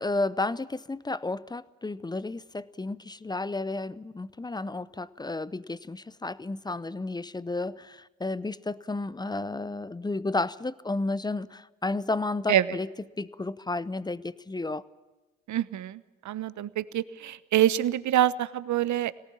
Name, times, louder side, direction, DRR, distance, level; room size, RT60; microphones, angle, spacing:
voice 1, 0.0-12.9 13.2-14.8, left 2 dB, 10° left, 19 dB, 0.7 m, -32 dB
voice 2, 15.5-19.1, right 12 dB, 45° right, 17 dB, 1.0 m, -26 dB
22.0 x 18.5 x 8.6 m, 1.2 s
hypercardioid pair, 60°, 40 cm